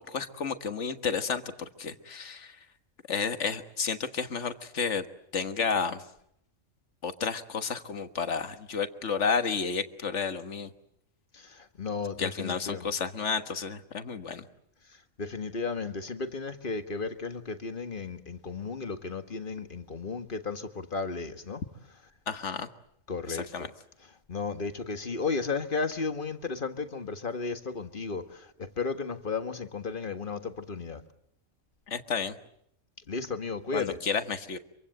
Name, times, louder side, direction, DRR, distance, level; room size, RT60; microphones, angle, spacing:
voice 1, 0.1-1.4 1.8-2.5 3.1-5.1 5.3-6.0 7.0-10.7 12.2-14.4 22.3-22.7 23.3-23.7 31.9-32.3 33.7-34.6, left 5 dB, 65° left, 1.8 m, -31 dB
voice 2, 11.3-12.9 15.2-21.6 23.1-23.7 24.3-31.0 33.1-34.0, left 4 dB, 40° left, 1.8 m, -34 dB
26.0 x 24.5 x 7.8 m
omnidirectional pair, 1.3 m